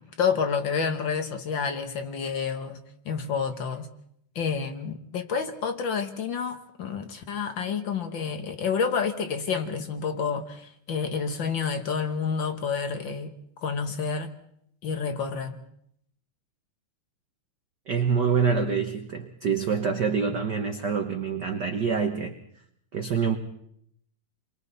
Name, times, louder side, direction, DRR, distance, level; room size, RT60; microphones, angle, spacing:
voice 1, 0.0-2.8 3.0-3.9 4.3-13.4 13.6-14.3 14.8-15.6, left 6 dB, 55° left, 1.4 m, -29 dB
voice 2, 17.9-22.3 22.9-23.4, right 6 dB, 65° right, 1.0 m, -26 dB
29.0 x 23.5 x 4.1 m
omnidirectional pair, 3.5 m